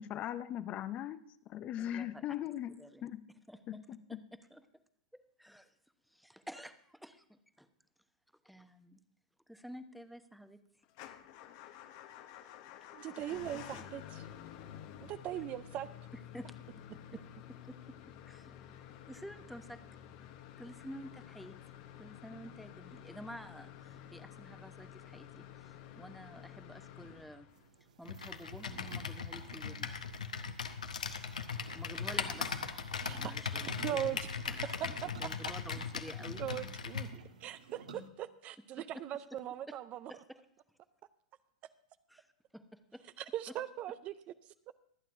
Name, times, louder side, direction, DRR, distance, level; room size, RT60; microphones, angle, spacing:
voice 1, 0.0-3.2 3.7-4.2, left 11 dB, 35° left, 13 dB, 0.5 m, -40 dB
voice 2, 1.8-2.2 2.8-3.1 3.5-3.6 4.1-4.2 4.5-4.7 5.1-5.7 6.1-7.7 8.4-9.0 9.5-10.6 13.3-13.9 16.3-16.5 17.1-17.2 17.7-17.8 18.3-18.6 18.9-19.8 20.6-21.5 22.0-27.5 28.0-30.0 31.7-32.5 33.0-34.2 34.5-36.4 38.9-39.0 39.7-39.8 40.1-40.4 42.1-42.3 42.5-43.0 43.5-43.6, equal, ahead, 9 dB, 0.9 m, -50 dB
Motor vehicle (road) / Engine starting / Idling, 10.9-27.9, left 10 dB, 55° left, 0.9 m, -51 dB
voice 3, 12.9-14.2 15.0-15.9 33.0-33.2 33.8-34.2 34.6-35.1 36.4-37.1 37.4-37.6 37.9-40.1 43.2-44.1 44.7-44.8, right 11 dB, 40° right, 13 dB, 0.5 m, -39 dB
sound 1, 27.5-38.1, right 5 dB, 80° right, 1.4 m, -55 dB
Computer keyboard, 28.1-37.1, left 5 dB, 85° left, 0.9 m, -39 dB
24.0 x 8.9 x 2.6 m, 0.65 s
hypercardioid pair, 105°, 4 cm